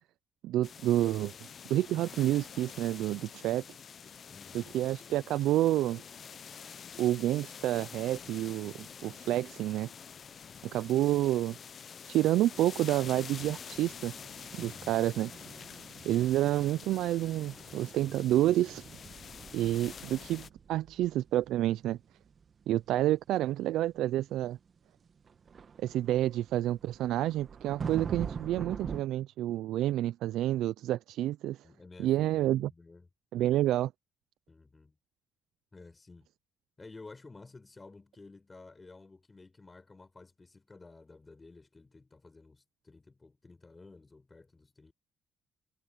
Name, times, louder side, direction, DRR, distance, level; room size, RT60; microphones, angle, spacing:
voice 1, 0.4-1.3 1.7-3.6 4.5-6.0 7.0-9.9 10.7-11.6 12.1-14.1 14.5-15.3 16.0-18.9 19.5-22.0 22.7-24.6 25.8-31.6 32.0-32.7 33.3-33.9, right 14 dB, 85° right, 0.3 m, -29 dB
sound 1, 0.6-20.5, left 7 dB, 50° left, 0.8 m, -47 dB
voice 2, 4.3-4.7 14.6-15.0 31.6-33.1 33.3-33.6 34.5-34.9 35.7-36.3 36.8-44.9, left 3 dB, 25° left, 4.6 m, -53 dB
sound 2, 13.4-29.0, right 6 dB, 45° right, 1.7 m, -46 dB
cardioid pair, 90°, 0 cm